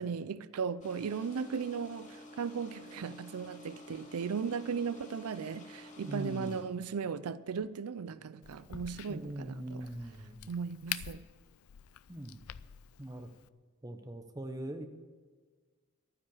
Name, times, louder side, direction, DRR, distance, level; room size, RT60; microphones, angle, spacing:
voice 1, 0.0-9.9 10.5-11.2, right 6 dB, 90° right, 0.4 m, -37 dB
sound 1, 0.8-6.6, left 1 dB, 35° left, 2.3 m, -51 dB
voice 2, 6.1-6.6 9.1-10.5 12.1-12.4 13.0-13.3 13.8-14.9, right 1 dB, 15° right, 0.9 m, -41 dB
Crack, 8.4-13.5, left 12 dB, 80° left, 0.4 m, -46 dB
12.0 x 9.7 x 7.1 m
head